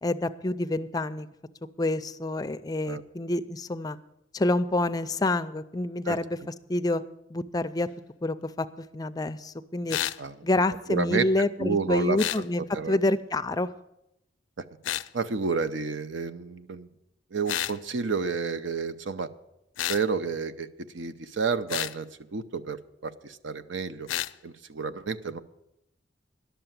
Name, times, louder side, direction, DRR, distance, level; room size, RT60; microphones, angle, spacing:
voice 1, 0.0-1.3 1.8-4.0 4.3-7.0 7.3-7.9 8.2-10.0 10.4-12.6 12.9-13.7, left 2 dB, 20° left, 12 dB, 0.4 m, -27 dB
sound 1, 9.9-10.2 12.2-12.4 14.8-15.1 17.5-17.8 19.8-20.0 21.7-22.0 24.1-24.3, left 12 dB, 85° left, 0.4 m, -30 dB
voice 2, 10.9-11.3 11.6-13.0 15.1-16.9 17.3-19.3 19.9-20.7 20.9-22.1 22.3-24.1 24.4-25.4, right 4 dB, 80° right, 12 dB, 0.6 m, -30 dB
11.5 x 6.8 x 9.0 m, 0.85 s
head